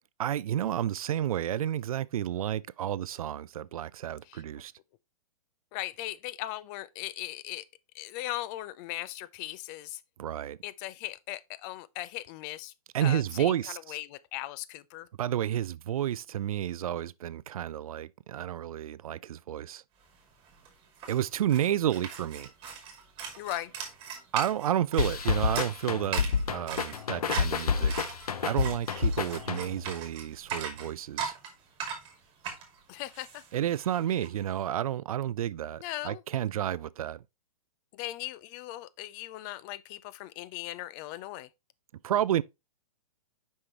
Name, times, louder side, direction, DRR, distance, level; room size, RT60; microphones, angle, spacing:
voice 1, 0.2-4.7 10.2-10.6 12.9-14.0 15.2-19.8 21.1-22.5 24.3-27.9 28.4-31.3 33.5-37.2 42.0-42.4, right 11 dB, 70° right, 0.4 m, -31 dB
voice 2, 4.3-4.6 5.7-7.7 7.9-10.0 10.6-12.7 13.0-13.6 13.9-15.1 23.4-23.7 32.9-33.4 35.8-36.2 37.9-41.5, left 15 dB, 30° left, 0.4 m, -38 dB
sound 1, 20.1-20.2 20.4-34.3, right 6 dB, 30° right, 2.3 m, -40 dB
sound 2, 25.0-29.9, left 6 dB, 80° left, 0.8 m, -29 dB
6.4 x 5.5 x 2.9 m
hypercardioid pair, 125°, 19 cm